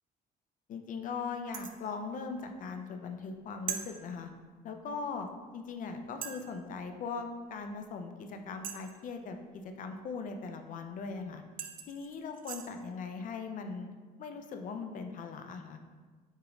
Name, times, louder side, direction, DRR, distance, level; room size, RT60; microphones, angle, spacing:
voice 1, 0.7-4.3 4.6-5.3 5.5-11.4 11.9-13.9 14.2-15.8, left 4 dB, 50° left, 6 dB, 0.5 m, -40 dB
sound 1, 1.5-1.8 3.7-3.9 5.3-5.4 6.2-6.5 8.6-9.1 11.1-11.2 11.6-12.7, right 8 dB, 55° right, 0.4 m, -40 dB
6.4 x 2.5 x 3.0 m, 1.4 s
cardioid pair, 110°, 17 cm